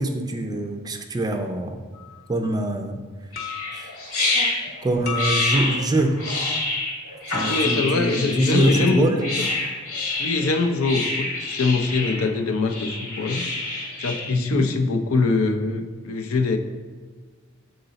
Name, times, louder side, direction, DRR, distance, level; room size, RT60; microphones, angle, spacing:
voice 1, 0.0-1.8 2.3-3.0 3.7-3.9 4.3-4.6 4.8-6.1 7.3-9.2 14.3-14.7, right 1 dB, 20° right, 5 dB, 0.4 m, -24 dB
sound 1, 1.9-2.2 3.4-3.9 5.0-5.9 7.3-8.0, left 7 dB, 45° left, 0.9 m, -33 dB
sound 2, 3.3-14.3, left 2 dB, 85° left, 1.5 m, -27 dB
voice 2, 7.4-9.4 10.2-13.4 14.0-16.6, left 3 dB, 70° left, 6 dB, 0.5 m, -23 dB
6.7 x 3.9 x 4.0 m, 1.4 s
head